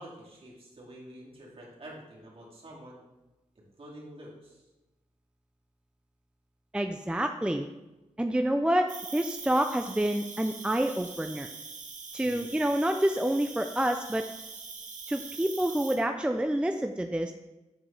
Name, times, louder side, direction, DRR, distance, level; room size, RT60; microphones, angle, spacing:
voice 1, 0.0-3.0 3.6-4.6 12.2-12.5, right 1 dB, 45° right, -4 dB, 2.2 m, -48 dB
voice 2, 6.7-7.7 8.2-11.5 12.1-14.2 15.1-17.3, right 1 dB, 5° right, 6 dB, 0.4 m, -28 dB
Cricket, 8.9-15.9, right 5 dB, 70° right, 0.9 m, -43 dB
7.6 x 4.7 x 3.3 m, 1.0 s
cardioid pair, 50°, 13 cm